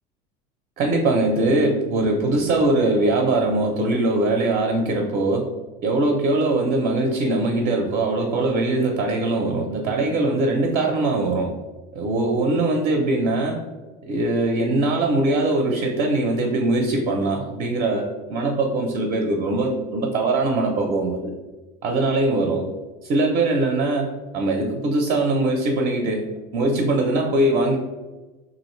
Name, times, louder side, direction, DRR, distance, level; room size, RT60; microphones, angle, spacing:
voice 1, 0.8-5.5 5.8-11.5 11.9-13.6 14.1-21.3 21.8-22.6 23.0-26.3 26.5-27.8, right 2 dB, 40° right, 2 dB, 0.5 m, -21 dB
3.1 x 2.5 x 3.1 m, 1.2 s
cardioid pair, 140°, 20 cm